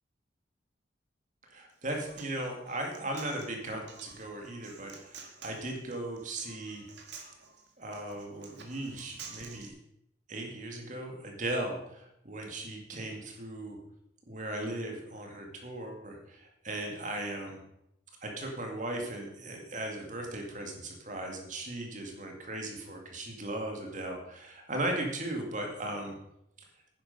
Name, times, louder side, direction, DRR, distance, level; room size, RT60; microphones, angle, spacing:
voice 1, 1.5-6.8 7.8-9.7 10.3-13.8 14.3-17.6 18.2-26.1, right 1 dB, 40° right, 2 dB, 2.2 m, -37 dB
Human voice, 1.7-9.7, right 5 dB, 65° right, 2.1 m, -50 dB
10.5 x 10.0 x 5.4 m, 0.80 s
head